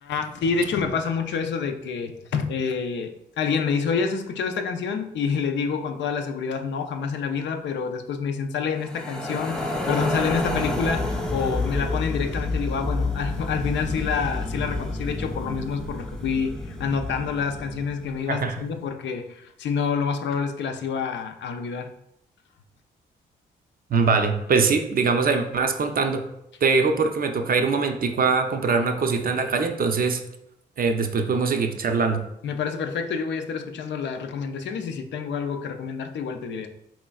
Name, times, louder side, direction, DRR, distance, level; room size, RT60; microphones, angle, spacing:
voice 1, 0.0-21.9 32.4-36.7, left 6 dB, 60° left, 7 dB, 0.4 m, -28 dB
sound 1, 8.8-18.1, left 2 dB, 5° left, 0.6 m, -29 dB
voice 2, 18.3-18.6 23.9-26.2 26.6-30.2 30.8-32.2, right 4 dB, 45° right, 6 dB, 0.5 m, -22 dB
4.1 x 3.1 x 2.3 m, 0.82 s
hypercardioid pair, 40°, 21 cm